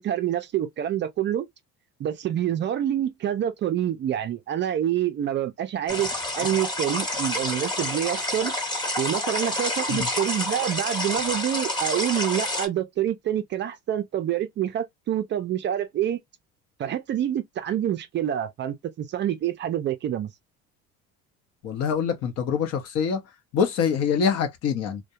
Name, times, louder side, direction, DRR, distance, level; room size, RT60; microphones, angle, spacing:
voice 1, 0.0-1.5 2.0-6.1 6.3-8.5 9.0-16.2 16.8-20.3, right 11 dB, 40° right, 0.4 m, -27 dB
sound 1, 5.9-12.7, left 1 dB, 15° left, 0.9 m, -28 dB
voice 2, 21.6-23.2 23.5-25.0, left 6 dB, 55° left, 0.8 m, -25 dB
2.3 x 2.1 x 2.7 m
cardioid pair, 115°, 30 cm